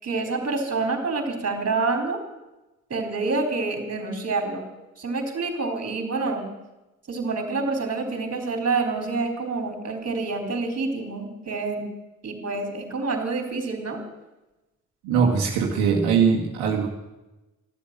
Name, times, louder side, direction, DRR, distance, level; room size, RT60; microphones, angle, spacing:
voice 1, 0.0-2.2 2.9-4.7 5.0-6.5 7.1-11.9 12.2-14.0, right 3 dB, 35° right, 4 dB, 4.2 m, -27 dB
voice 2, 15.0-16.9, right 6 dB, 70° right, -2 dB, 2.2 m, -21 dB
14.5 x 12.5 x 7.7 m, 1.0 s
figure-of-eight pair, 45°, 43 cm